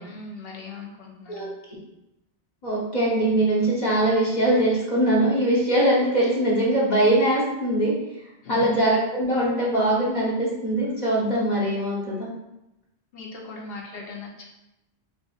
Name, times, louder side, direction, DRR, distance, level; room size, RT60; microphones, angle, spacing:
voice 1, 0.0-1.4 8.4-8.9 13.1-14.5, left 3 dB, 65° left, 0 dB, 0.9 m, -37 dB
voice 2, 2.6-7.9 8.5-12.3, right 1 dB, 45° left, -6 dB, 1.0 m, -22 dB
4.7 x 2.5 x 2.4 m, 0.90 s
omnidirectional pair, 1.1 m